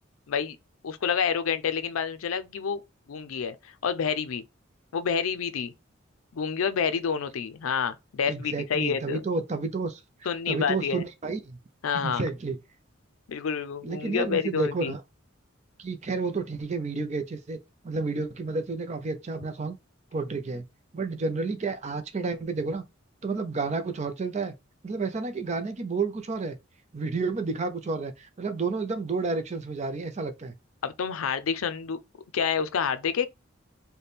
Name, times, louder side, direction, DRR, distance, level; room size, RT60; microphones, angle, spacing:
voice 1, 0.8-2.8 3.1-4.4 4.9-5.7 6.3-9.2 10.3-11.0 11.8-12.2 13.3-14.9 30.8-32.0 32.3-33.3, left 6 dB, 90° left, 0.5 m, -28 dB
voice 2, 8.3-11.6 12.0-12.6 13.8-15.0 15.8-17.6 17.8-19.8 20.1-20.7 20.9-22.8 23.2-24.5 24.8-26.6 26.9-30.5, right 4 dB, 35° right, 0.5 m, -31 dB
3.4 x 2.2 x 4.1 m
head